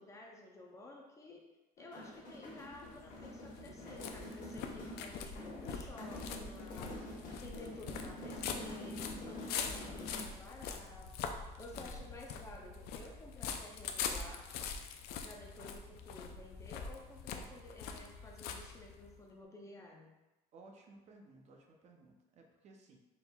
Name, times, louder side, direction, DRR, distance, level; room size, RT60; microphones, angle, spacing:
voice 1, 0.0-1.4 1.8-7.0 7.4-14.5 15.2-20.1, left 2 dB, 20° left, -1 dB, 0.5 m, -53 dB
sound 1, 1.8-10.5, left 1 dB, 50° left, 1.1 m, -47 dB
sound 2, 2.7-19.2, left 6 dB, 75° left, 0.4 m, -44 dB
voice 2, 7.7-8.0 9.5-9.9 11.7-12.0 18.1-18.3 20.5-23.0, right 3 dB, 45° right, 1 dB, 0.6 m, -59 dB
4.3 x 3.7 x 2.3 m, 1.0 s
cardioid pair, 150°, 17 cm